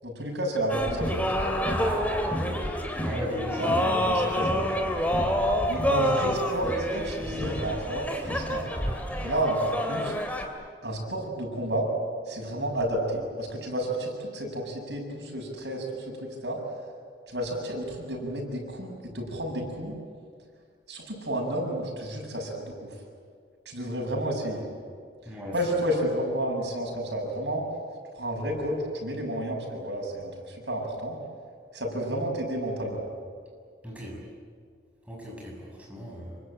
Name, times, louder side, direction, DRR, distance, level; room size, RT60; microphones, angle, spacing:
voice 1, 0.0-1.9 3.6-4.9 5.7-8.7 9.2-10.1 10.8-11.9 12.3-16.6 17.3-19.9 20.9-22.9 23.7-24.7 25.5-27.6 28.1-31.2 31.7-33.0, right 1 dB, 85° right, 0 dB, 7.5 m, -31 dB
sound 1, 0.7-10.5, equal, 10° left, 2.7 m, -28 dB
voice 2, 3.0-3.6 25.2-25.5 33.8-34.2 35.1-36.4, equal, 10° right, -3 dB, 6.9 m, -36 dB
27.0 x 24.0 x 8.8 m, 2.1 s
head